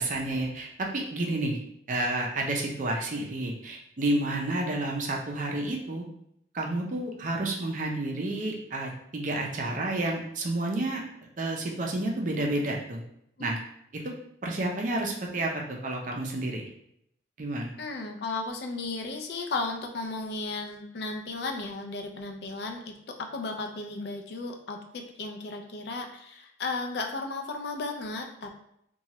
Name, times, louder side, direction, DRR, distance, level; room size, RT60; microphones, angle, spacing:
voice 1, 0.0-1.6 1.9-6.0 6.5-11.0 11.4-13.0 13.4-13.6 13.9-14.1 14.4-16.7 17.4-17.7, right 2 dB, 45° right, 0 dB, 0.5 m, -30 dB
voice 2, 17.8-28.5, left 3 dB, 65° left, 3 dB, 0.4 m, -35 dB
3.0 x 2.3 x 2.8 m, 0.74 s
head